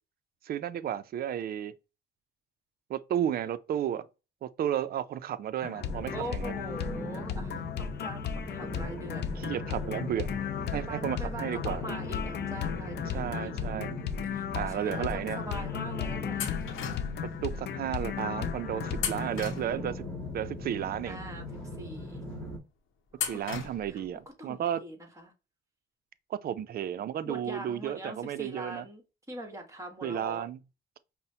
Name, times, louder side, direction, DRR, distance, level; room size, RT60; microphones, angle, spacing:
voice 1, 0.4-1.7 2.9-4.1 4.4-6.5 9.4-10.3 10.7-11.8 13.1-13.9 14.5-15.4 17.4-20.0 20.3-21.2 23.3-24.8 26.3-28.9 30.0-30.6, right 10 dB, 50° right, 0.4 m, -33 dB
sound 1, 5.6-19.3, left 8 dB, 60° left, 0.5 m, -36 dB
sound 2, 5.8-22.6, left 2 dB, 5° left, 1.5 m, -39 dB
voice 2, 6.1-9.4 10.3-16.5 21.0-21.4 21.8-22.2 23.2-23.4 23.9-24.0 24.4-25.3 27.3-29.0 29.3-30.5, right 1 dB, 15° right, 1.3 m, -42 dB
sound 3, 16.4-17.3 19.0-20.1 23.1-24.1, left 8 dB, 85° left, 0.8 m, -36 dB
5.3 x 2.1 x 2.7 m
cardioid pair, 90°, 20 cm